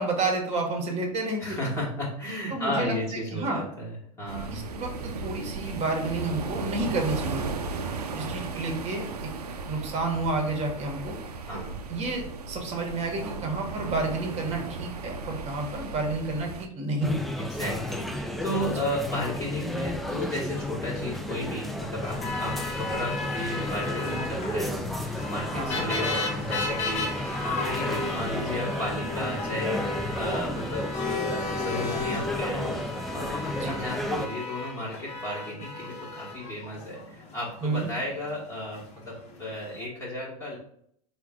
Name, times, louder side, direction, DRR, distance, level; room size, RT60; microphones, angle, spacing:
voice 1, 0.0-1.6 2.5-2.9 3.3-3.6 4.5-7.6 8.2-9.1 9.7-11.2 11.9-17.2 25.5-25.8 33.5-33.8 37.6-37.9, right 2 dB, 35° right, 2 dB, 1.1 m, -30 dB
voice 2, 1.4-4.6 7.7-8.4 11.4-11.8 17.4-32.8 33.1-40.6, left 1 dB, 15° left, -6 dB, 1.3 m, -34 dB
sound 1, 4.3-16.7, right 4 dB, 80° right, 0.5 m, -35 dB
sound 2, 17.0-34.3, left 1 dB, ahead, 0.4 m, -33 dB
sound 3, 22.0-39.9, left 3 dB, 35° left, 0.9 m, -35 dB
4.5 x 2.3 x 3.7 m, 0.68 s
hypercardioid pair, 90°, 20 cm